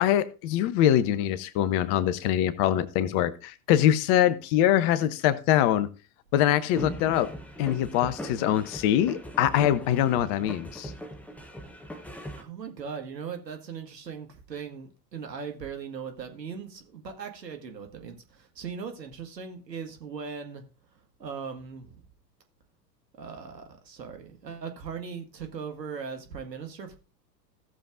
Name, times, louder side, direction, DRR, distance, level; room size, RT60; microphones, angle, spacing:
voice 1, 0.0-5.9 6.3-7.3 7.6-10.9, left 11 dB, 35° left, 0.8 m, -23 dB
sound 1, 6.8-12.4, equal, 5° left, 0.8 m, -40 dB
voice 2, 12.3-20.6 21.2-22.0 23.2-27.0, right 6 dB, 75° right, 1.9 m, -39 dB
16.5 x 7.0 x 2.6 m
figure-of-eight pair, 90°, 50 cm